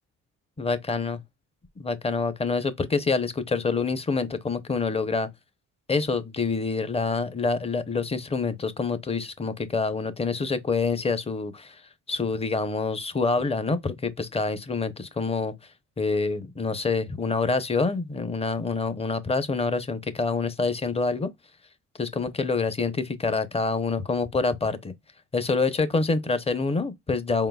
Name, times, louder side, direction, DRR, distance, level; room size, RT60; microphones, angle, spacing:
voice 1, 0.6-1.2 1.8-5.3 5.9-11.8 12.1-15.5 16.0-21.3 22.0-24.9 25.3-27.5, left 4 dB, 20° left, 0.7 m, -26 dB
4.8 x 3.8 x 2.3 m
cardioid pair, 90°, 30 cm